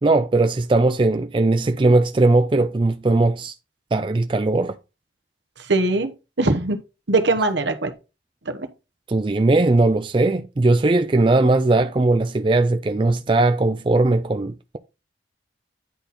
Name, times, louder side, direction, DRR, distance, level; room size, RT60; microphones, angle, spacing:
voice 1, 0.0-3.5 3.9-4.8 9.1-14.8, right 2 dB, 25° right, 0.4 m, -19 dB
voice 2, 5.7-6.1 6.4-6.8 7.1-7.9 8.5-8.7, right 2 dB, 75° right, 1.1 m, -21 dB
10.0 x 4.2 x 4.1 m
head